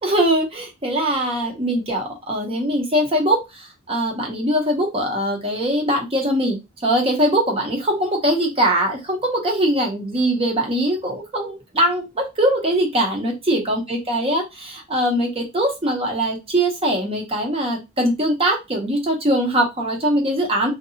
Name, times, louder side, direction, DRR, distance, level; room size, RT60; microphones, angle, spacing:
voice 1, 0.0-20.7, right 1 dB, 25° right, 1 dB, 0.7 m, -21 dB
2.7 x 2.2 x 2.7 m, 0.23 s
head